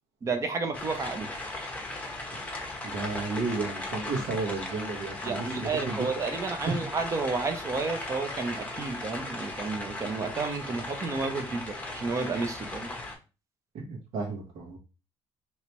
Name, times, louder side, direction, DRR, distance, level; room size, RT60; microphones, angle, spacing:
voice 1, 0.2-1.3 5.2-12.9, right 4 dB, 30° right, 6 dB, 0.6 m, -31 dB
sound 1, 0.7-13.1, left 2 dB, 15° left, 0.8 m, -37 dB
voice 2, 2.8-6.0 6.6-6.7 13.7-14.8, right 3 dB, 90° right, -1 dB, 1.3 m, -33 dB
3.3 x 3.0 x 2.9 m, 0.31 s
cardioid pair, 155°, 10 cm